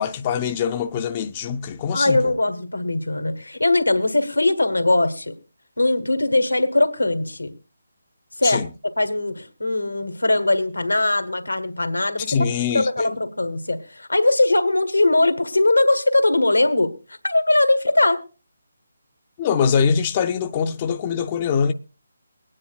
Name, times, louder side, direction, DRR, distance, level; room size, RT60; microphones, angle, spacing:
voice 1, 0.0-2.3 8.4-8.7 12.3-13.1 19.4-21.7, left 6 dB, 25° left, 0.5 m, -23 dB
voice 2, 1.9-5.3 5.8-7.5 8.4-8.6 9.0-12.4 12.7-16.9 17.2-18.2, left 2 dB, 85° left, 1.5 m, -20 dB
23.5 x 9.7 x 2.3 m
figure-of-eight pair, 150°, 0 cm